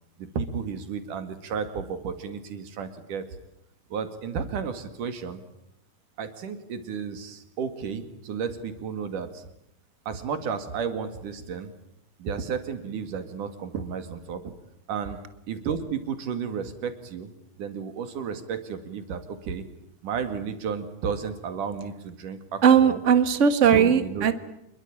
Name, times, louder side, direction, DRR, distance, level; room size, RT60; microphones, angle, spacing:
voice 1, 0.2-3.3 3.9-5.4 6.2-9.5 10.1-11.7 12.2-14.4 14.9-15.2 15.5-17.3 17.6-19.6 20.0-23.0 23.6-24.3, right 6 dB, 80° right, 9 dB, 3.8 m, -32 dB
voice 2, 22.6-24.3, right 7 dB, 40° right, 11 dB, 1.1 m, -18 dB
27.0 x 22.5 x 8.9 m, 0.82 s
omnidirectional pair, 3.6 m